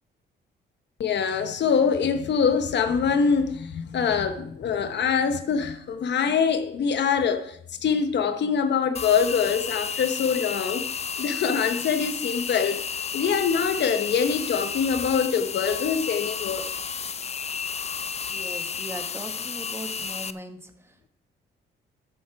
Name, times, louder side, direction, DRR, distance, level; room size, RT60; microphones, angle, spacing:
voice 1, 1.0-10.9 11.2-12.8 13.1-16.7, left 6 dB, 60° left, 1.0 m, -24 dB
sound 1, 8.9-20.3, left 6 dB, 30° left, 0.6 m, -32 dB
voice 2, 18.3-21.1, right 1 dB, 10° right, 1.5 m, -39 dB
13.0 x 7.5 x 4.7 m
cardioid pair, 90°, 20 cm